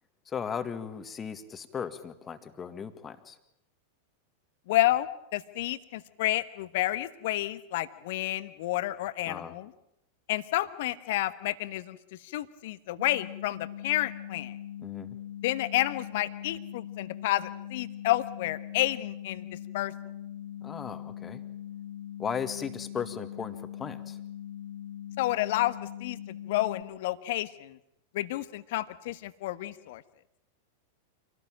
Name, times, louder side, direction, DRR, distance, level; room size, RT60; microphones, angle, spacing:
voice 1, 0.3-3.4 9.3-9.5 14.8-15.2 20.6-21.4 22.2-24.2, left 7 dB, 20° left, 10 dB, 1.9 m, -36 dB
voice 2, 4.7-5.1 5.3-9.7 10.3-14.6 15.4-19.5 19.7-19.9 25.2-26.2 26.5-27.8 28.1-30.0, left 16 dB, 55° left, 14 dB, 1.3 m, -30 dB
sound 1, 13.0-26.8, left 11 dB, 60° right, 3.2 m, -41 dB
27.0 x 18.5 x 9.0 m, 0.82 s
figure-of-eight pair, 90°, 0 cm